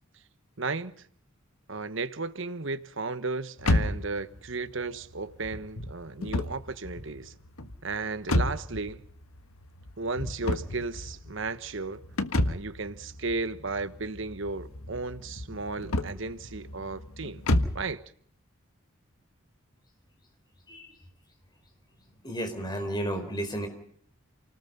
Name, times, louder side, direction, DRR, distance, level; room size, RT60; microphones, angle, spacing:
voice 1, 0.6-1.0 1.7-7.3 7.8-9.0 10.0-12.0 12.4-17.4 17.7-18.0, right 3 dB, 60° right, 1.2 m, -34 dB
sound 1, 3.6-17.9, left 1 dB, 85° left, 1.5 m, -32 dB
voice 2, 22.2-23.7, right 1 dB, 20° left, 4.5 m, -32 dB
29.0 x 19.5 x 5.5 m
head